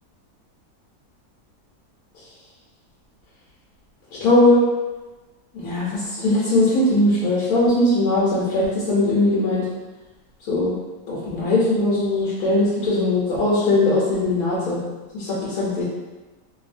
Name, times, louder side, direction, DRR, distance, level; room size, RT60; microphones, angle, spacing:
voice 1, 4.2-4.6 5.5-9.7 10.5-10.7 11.1-14.8 15.1-15.8, left 2 dB, 75° left, -7 dB, 1.2 m, -20 dB
2.7 x 2.6 x 2.5 m, 1.2 s
omnidirectional pair, 1.6 m